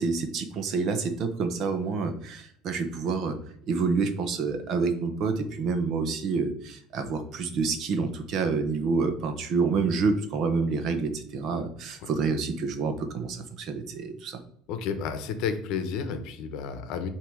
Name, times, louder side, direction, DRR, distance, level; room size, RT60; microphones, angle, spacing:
voice 1, 0.0-3.4 3.7-14.4, right 4 dB, 45° right, 7 dB, 0.9 m, -28 dB
voice 2, 14.7-17.1, left 6 dB, 60° left, 9 dB, 0.9 m, -31 dB
8.3 x 2.9 x 4.6 m, 0.66 s
cardioid pair, 155°, 0 cm